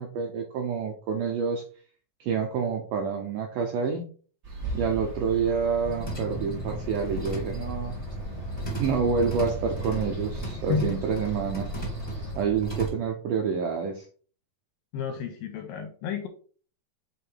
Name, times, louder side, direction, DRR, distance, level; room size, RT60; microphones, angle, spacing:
voice 1, 0.0-1.6 2.2-4.1 4.7-7.9 8.8-11.7 12.4-14.1, right 6 dB, 80° right, 2 dB, 1.9 m, -28 dB
sound 1, 4.4-12.3, right 2 dB, 35° right, 1.9 m, -38 dB
sound 2, 5.8-12.9, right 1 dB, 15° left, 1.0 m, -35 dB
voice 2, 14.9-16.3, left 5 dB, 80° left, 5 dB, 2.1 m, -30 dB
6.9 x 3.2 x 4.5 m, 0.41 s
omnidirectional pair, 4.7 m